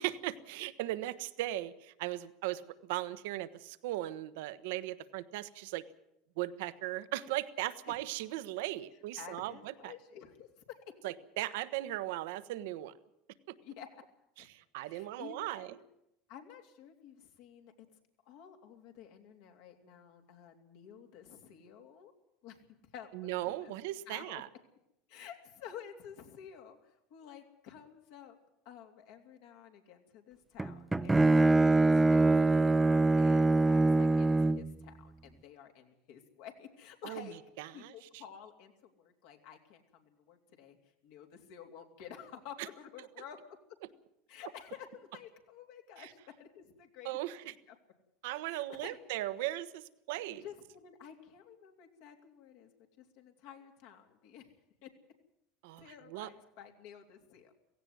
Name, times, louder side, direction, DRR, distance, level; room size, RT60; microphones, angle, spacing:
voice 1, 0.0-5.9 6.4-9.9 11.0-12.9 14.4-15.8 23.1-24.5 37.0-37.3 37.6-38.2 42.6-42.7 46.0-46.1 47.0-47.5 48.2-50.4 55.6-56.3, right 15 dB, 75° right, 14 dB, 1.0 m, -38 dB
voice 2, 9.2-11.1 13.6-14.0 14.4-14.5 14.8-15.8 16.3-17.9 18.2-22.1 22.4-22.6 22.9-23.7 24.1-24.4 25.1-28.4 28.6-37.4 37.7-40.8 41.0-43.8 44.3-47.1 47.4-47.7 48.4-49.0 50.4-54.5 54.8-54.9 55.8-57.5, left 8 dB, 70° left, 3 dB, 3.3 m, -51 dB
Bowed string instrument, 30.6-34.7, right 2 dB, 10° right, 0.6 m, -24 dB
17.0 x 16.0 x 9.4 m, 0.81 s
supercardioid pair, 105°, 0 cm